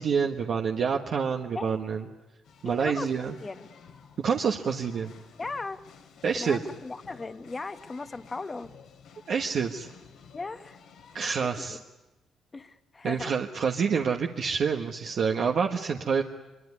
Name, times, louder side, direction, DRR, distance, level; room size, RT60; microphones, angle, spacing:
voice 1, 0.0-2.0 2.6-3.3 4.2-5.1 6.2-6.6 9.3-9.9 11.1-11.8 13.0-16.2, right 6 dB, 60° right, 2 dB, 1.3 m, -27 dB
sound 1, 2.4-11.2, left 6 dB, 80° left, 3.0 m, -53 dB
voice 2, 2.6-3.1 3.4-3.7 5.4-5.8 6.3-8.7 10.3-10.8 11.4-11.8 12.5-13.3, left 3 dB, 25° left, 10 dB, 1.2 m, -37 dB
24.0 x 23.5 x 9.7 m, 1.1 s
cardioid pair, 90°, 0 cm